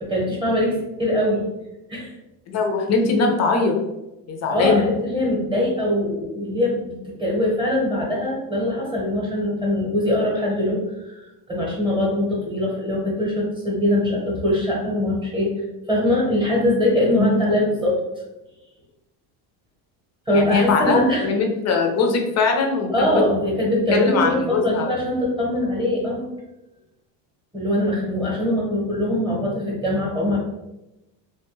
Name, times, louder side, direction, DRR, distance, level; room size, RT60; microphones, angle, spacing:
voice 1, 0.0-1.5 1.9-2.1 4.5-15.6 15.9-18.0 20.3-21.3 22.9-26.2 27.5-30.4, left 1 dB, 10° right, -4 dB, 0.8 m, -22 dB
voice 2, 2.5-3.8 4.3-4.8 17.1-17.4 20.3-23.1 23.9-24.9, left 4 dB, 35° left, 2 dB, 0.4 m, -21 dB
3.1 x 2.2 x 3.0 m, 0.95 s
cardioid pair, 140°, 49 cm